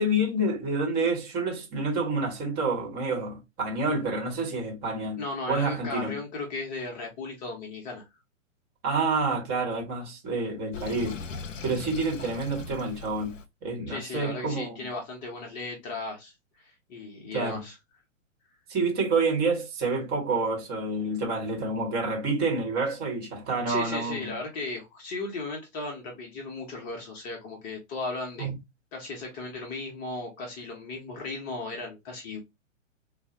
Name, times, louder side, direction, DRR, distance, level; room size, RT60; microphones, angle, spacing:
voice 1, 0.0-5.2 5.5-6.2 8.8-11.2 11.6-13.4 13.6-14.8 17.3-17.6 18.7-24.3 28.4-28.6, right 2 dB, 25° right, 1.2 m, -28 dB
voice 2, 5.2-8.0 13.9-17.8 23.7-28.5 28.9-32.4, left 3 dB, 25° left, 0.8 m, -36 dB
Sink (filling or washing), 10.7-13.5, left 5 dB, 75° left, 0.6 m, -39 dB
3.8 x 2.2 x 2.8 m
figure-of-eight pair, 115°, 38 cm